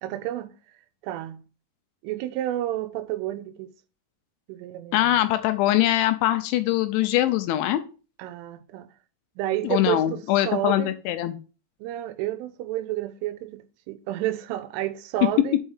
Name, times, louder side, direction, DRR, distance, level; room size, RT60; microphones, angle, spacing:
voice 1, 0.0-0.5 1.0-1.4 2.0-3.7 4.5-5.2 8.2-8.9 9.4-10.9 11.8-15.6, right 13 dB, 85° right, 3.2 m, -30 dB
voice 2, 4.9-7.8 9.6-11.4, left 14 dB, 80° left, 2.9 m, -22 dB
6.4 x 5.8 x 7.2 m
omnidirectional pair, 5.7 m